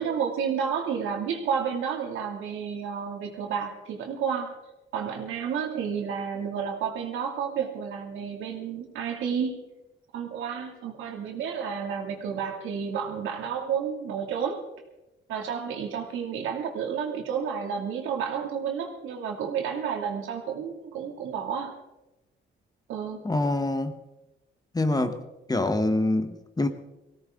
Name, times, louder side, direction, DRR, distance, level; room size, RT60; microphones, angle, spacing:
voice 1, 0.0-4.5 4.9-9.6 10.1-14.6 15.3-21.7 22.9-23.2, right 7 dB, 85° right, 2.7 m, -31 dB
voice 2, 23.2-24.0 24.7-25.2 25.5-26.7, left 2 dB, 20° left, 1.3 m, -25 dB
19.0 x 16.5 x 3.8 m
cardioid pair, 90°, 20 cm